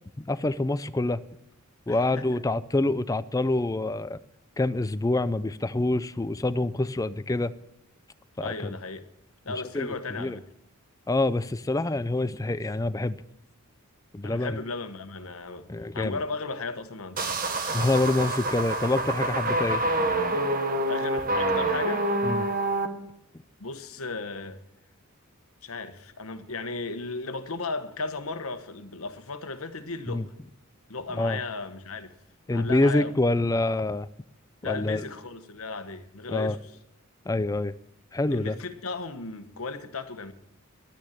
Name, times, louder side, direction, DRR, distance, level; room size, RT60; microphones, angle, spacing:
voice 1, 0.2-1.2 1.9-4.2 4.6-7.5 8.4-8.8 9.7-10.4 11.1-13.2 14.1-14.6 15.7-16.2 17.7-19.8 22.2-22.5 30.1-30.2 31.1-31.4 32.5-34.1 34.6-35.0 36.3-36.6 37.3-37.7 38.1-38.6, left 2 dB, 15° left, 0.4 m, -26 dB
voice 2, 1.9-2.2 8.4-9.1 9.4-10.4 14.2-17.3 20.8-22.1 23.6-24.6 25.6-30.3 30.9-32.1 32.5-33.1 34.6-36.6 38.3-40.3, left 3 dB, 75° left, 1.2 m, -35 dB
sound 1, 17.2-22.9, right 2 dB, 40° right, 1.3 m, -27 dB
11.5 x 9.4 x 8.6 m
head